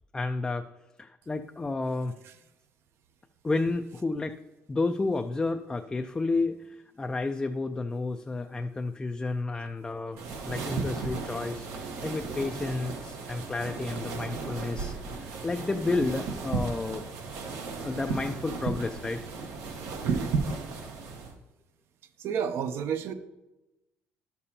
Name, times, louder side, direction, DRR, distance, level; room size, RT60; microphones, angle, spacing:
voice 1, 0.1-0.7 1.0-2.1 3.4-4.4 4.7-10.2 10.5-17.0 17.8-19.2, left 3 dB, 15° left, 5 dB, 0.3 m, -31 dB
sound 1, 10.2-21.3, right 4 dB, 80° right, 1.2 m, -35 dB
voice 2, 20.0-20.4 22.2-23.1, right 7 dB, 60° right, 10 dB, 0.6 m, -31 dB
11.0 x 6.8 x 2.8 m, 1.0 s
cardioid pair, 130°, 5 cm